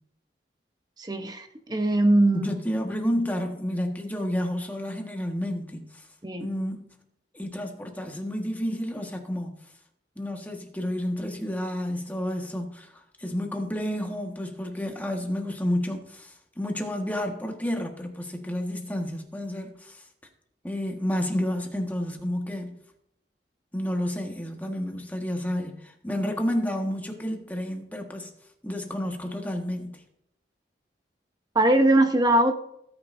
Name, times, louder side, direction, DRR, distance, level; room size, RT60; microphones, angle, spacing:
voice 1, 1.0-2.5 6.2-6.5 31.5-32.5, right 1 dB, 25° right, 0.9 m, -21 dB
voice 2, 2.3-6.1 6.4-6.9 7.3-9.6 10.1-20.0 20.6-22.8 23.7-28.3 28.6-30.0, left 1 dB, 10° left, 1.5 m, -30 dB
18.5 x 9.7 x 2.7 m
head